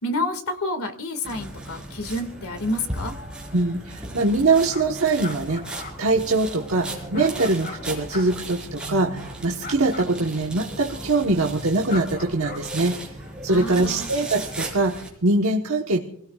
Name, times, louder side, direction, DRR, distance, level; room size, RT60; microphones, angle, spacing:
voice 1, 0.0-3.1 13.5-14.1, left 1 dB, 80° left, 6 dB, 2.1 m, -29 dB
sound 1, 1.2-15.1, right 2 dB, 5° right, 4.4 m, -36 dB
voice 2, 3.5-5.6 6.0-13.0 13.4-16.0, right 2 dB, 70° right, 1 dB, 1.2 m, -22 dB
sound 2, 4.7-7.8 8.1-8.3 9.6-10.1 11.9-12.6, left 4 dB, 40° left, 3.6 m, -39 dB
27.5 x 17.0 x 2.4 m, 0.67 s
head